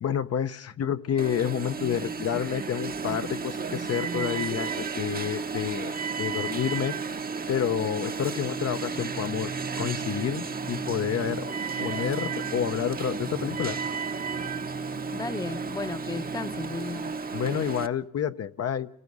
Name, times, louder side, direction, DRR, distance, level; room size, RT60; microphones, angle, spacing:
voice 1, 0.0-7.0 7.5-11.5 11.8-13.8 17.3-18.9, left 9 dB, 55° left, 0.9 m, -29 dB
Alarm, 1.2-17.9, right 5 dB, 30° right, 0.9 m, -33 dB
Singing, 8.4-17.3, right 2 dB, 80° left, 2.9 m, -42 dB
voice 2, 15.1-17.2, left 3 dB, 15° left, 0.9 m, -34 dB
29.0 x 18.0 x 5.5 m
cardioid pair, 90°, 30 cm